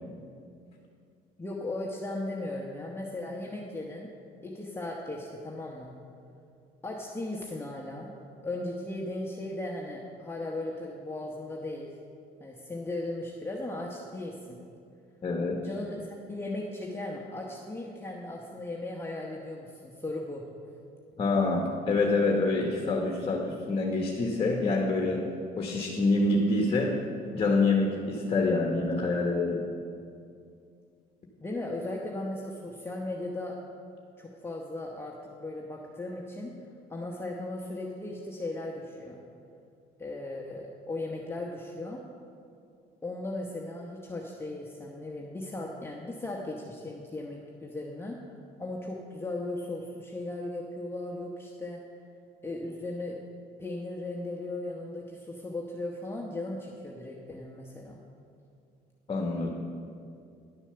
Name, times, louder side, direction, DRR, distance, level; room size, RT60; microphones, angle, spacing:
voice 1, 1.4-4.1 4.4-5.9 6.8-8.1 8.4-11.9 12.4-14.6 15.6-20.4 31.4-33.5 34.2-35.1 35.4-36.6 36.9-39.2 40.0-42.0 43.0-48.2 48.6-51.8 52.4-53.2 53.6-58.0, left 2 dB, 15° left, -2 dB, 1.0 m, -37 dB
voice 2, 15.2-15.6 21.2-25.2 25.6-27.0 27.3-29.7 59.1-59.5, left 3 dB, 30° left, 1 dB, 1.2 m, -26 dB
10.5 x 7.0 x 6.8 m, 2.4 s
cardioid pair, 110°, 17 cm